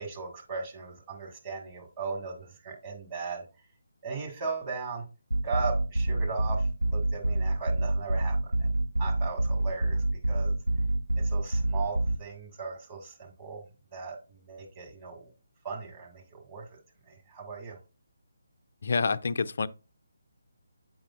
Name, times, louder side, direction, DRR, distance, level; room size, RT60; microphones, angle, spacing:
voice 1, 0.0-3.4 4.0-5.0 5.4-8.7 9.0-10.5 11.2-13.6 13.9-15.3 15.6-16.8 17.1-17.8, right 4 dB, 25° right, 1.9 m, -38 dB
sound 1, 5.3-12.2, right 1 dB, 75° right, 0.6 m, -27 dB
voice 2, 18.8-19.7, left 4 dB, 55° left, 0.4 m, -27 dB
7.5 x 5.5 x 2.5 m
figure-of-eight pair, 150°, 0 cm